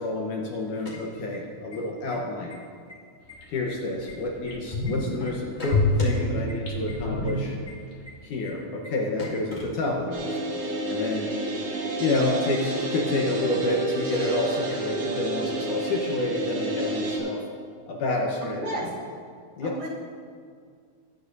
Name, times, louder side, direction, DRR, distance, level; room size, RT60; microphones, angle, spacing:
voice 1, 0.0-2.6 3.5-7.6 8.2-11.3 12.0-17.4 17.9-18.9 19.6-19.8, left 2 dB, 70° left, -1 dB, 2.2 m, -29 dB
sound 1, 0.6-1.8 2.1-2.2 2.5-2.9 3.3-4.9 5.3-6.1 6.5-6.6 6.9-7.0 7.3-7.4 7.7-7.8 8.1-8.2 8.4-8.5 8.8-8.9 9.2-10.2, left 2 dB, 25° left, 1.6 m, -39 dB
sound 2, 3.4-3.5 4.0-4.1 4.4-5.2 5.7-7.9 8.2-8.3, left 2 dB, 85° left, 4.1 m, -26 dB
sound 3, 10.1-17.2, right 1 dB, 90° right, 4.4 m, -30 dB
voice 2, 18.4-18.9 19.6-19.9, right 2 dB, 55° right, -6 dB, 2.9 m, -33 dB
21.5 x 9.7 x 2.7 m, 2.1 s
omnidirectional pair, 4.3 m